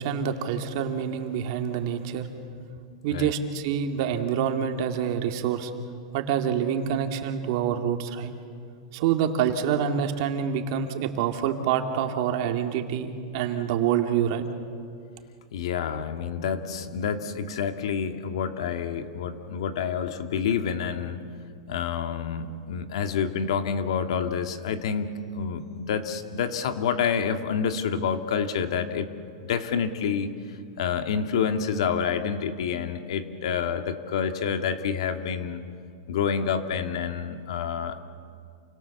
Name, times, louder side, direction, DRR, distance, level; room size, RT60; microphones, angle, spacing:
voice 1, 0.0-2.3 3.0-5.7 6.1-8.3 8.9-14.4, right 8 dB, 50° right, 5 dB, 2.2 m, -26 dB
voice 2, 2.9-3.3 15.5-21.2 21.7-29.1 29.5-30.3 30.8-35.6 36.1-38.0, left 7 dB, 70° left, 7 dB, 2.0 m, -28 dB
29.0 x 26.0 x 7.2 m, 2.3 s
supercardioid pair, 165°, 3 cm